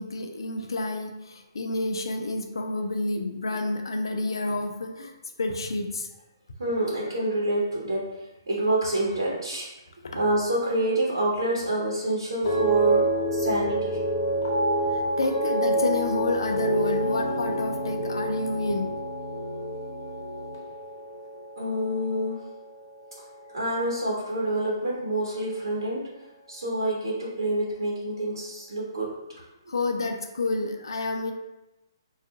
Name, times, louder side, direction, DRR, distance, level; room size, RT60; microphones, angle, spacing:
voice 1, 0.0-6.1 10.0-10.2 14.8-18.9 29.7-31.3, left 2 dB, 75° left, 4 dB, 0.5 m, -29 dB
voice 2, 6.6-9.7 10.1-14.0 21.6-22.4 23.5-26.0 26.5-29.1, right 1 dB, 70° right, -4 dB, 0.8 m, -27 dB
sound 1, 12.4-22.8 23.1-23.7, right 1 dB, 55° left, 0.9 m, -28 dB
3.7 x 2.4 x 2.4 m, 0.98 s
figure-of-eight pair, 135°, 2 cm